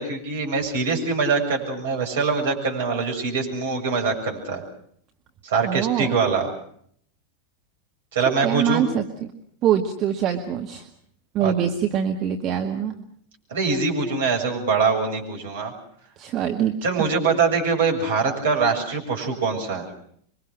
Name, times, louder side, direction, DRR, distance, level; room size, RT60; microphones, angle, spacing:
voice 1, 0.0-4.6 5.4-6.5 8.1-8.8 11.4-11.5 13.5-15.7 16.8-19.9, right 4 dB, 60° right, 2 dB, 7.2 m, -23 dB
voice 2, 5.6-6.1 8.4-9.3 9.6-10.8 11.3-12.9 16.2-16.8, right 9 dB, 35° right, 4 dB, 2.0 m, -24 dB
27.0 x 24.0 x 6.3 m, 0.64 s
figure-of-eight pair, 90°, 0 cm